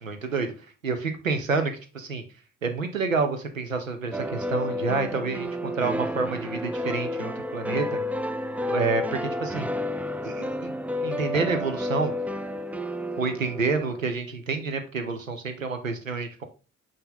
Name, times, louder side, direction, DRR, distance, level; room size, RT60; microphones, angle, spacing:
voice 1, 0.0-0.5 0.8-2.2 2.6-8.0 8.7-9.7 10.2-10.7 11.0-12.1 13.2-16.4, right 4 dB, 90° right, 7 dB, 0.7 m, -28 dB
sound 1, 4.1-14.0, left 1 dB, 5° right, 0.3 m, -31 dB
5.5 x 5.1 x 4.0 m, 0.34 s
figure-of-eight pair, 40°, 38 cm